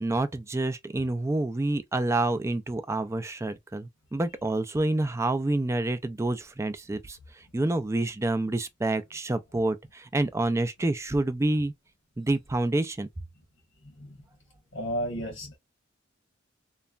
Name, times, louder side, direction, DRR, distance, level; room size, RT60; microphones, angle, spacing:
voice 1, 0.0-7.2 7.5-11.7 12.2-13.1, right 2 dB, 15° right, 0.4 m, -28 dB
voice 2, 13.8-14.2 14.7-15.6, equal, 85° left, 1.3 m, -33 dB
3.0 x 2.2 x 2.4 m
head